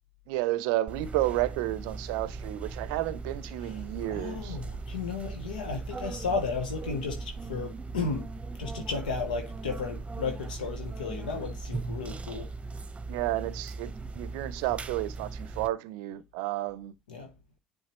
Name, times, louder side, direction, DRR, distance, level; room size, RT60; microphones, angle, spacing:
voice 1, 0.3-4.6 13.1-16.9, right 16 dB, 75° right, 0.5 m, -31 dB
sound 1, 0.9-15.7, right 3 dB, 25° right, 0.8 m, -39 dB
voice 2, 3.6-8.3 8.6-12.5 17.1-17.3, left 4 dB, 85° left, 0.8 m, -34 dB
10.0 x 3.6 x 3.0 m
hypercardioid pair, 55°, 5 cm